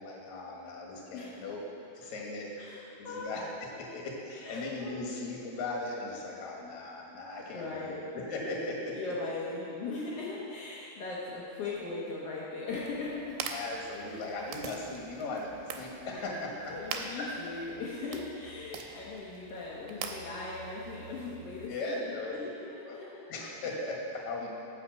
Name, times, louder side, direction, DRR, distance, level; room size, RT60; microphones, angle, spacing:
voice 1, 0.0-1.6 1.9-2.5 3.0-9.0 13.5-16.7 17.2-17.3 21.7-22.4 22.9-23.0 23.3-24.5, left 2 dB, 55° left, -2 dB, 2.5 m, -38 dB
voice 2, 1.1-1.4 2.6-3.5 4.4-5.2 7.5-8.0 8.9-13.4 16.3-16.4 16.7-23.3, left 3 dB, 85° left, -6 dB, 1.3 m, -39 dB
sound 1, 12.7-21.7, right 6 dB, 90° right, 2.6 m, -44 dB
9.9 x 5.7 x 7.3 m, 2.6 s
omnidirectional pair, 4.4 m